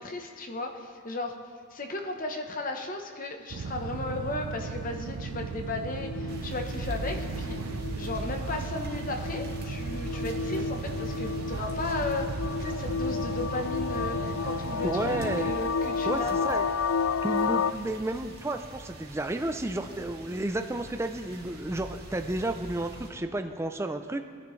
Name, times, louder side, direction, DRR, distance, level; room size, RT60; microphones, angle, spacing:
voice 1, 0.0-1.4 1.7-7.6 8.0-16.3, left 2 dB, 40° left, 4 dB, 0.9 m, -35 dB
sound 1, 3.5-15.6, right 5 dB, 80° right, 0.5 m, -36 dB
sound 2, 5.7-17.7, left 5 dB, 70° left, 0.3 m, -32 dB
sound 3, 6.3-23.1, right 1 dB, 50° right, 1.9 m, -42 dB
voice 2, 14.8-15.6 16.1-16.7 17.2-24.2, right 1 dB, 10° right, 6 dB, 0.4 m, -32 dB
20.5 x 10.5 x 3.2 m, 2.1 s
head